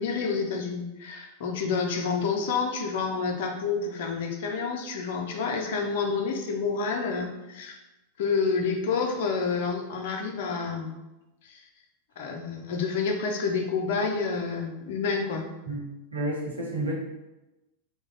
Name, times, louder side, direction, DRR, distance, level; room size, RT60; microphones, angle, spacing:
voice 1, 0.0-7.8 8.2-11.0 11.4-11.6 12.2-15.5, left 5 dB, 55° left, 2 dB, 0.5 m, -29 dB
voice 2, 15.7-16.9, right 1 dB, 80° right, -5 dB, 0.9 m, -31 dB
3.1 x 2.1 x 3.8 m, 0.99 s
figure-of-eight pair, 90°, 0 cm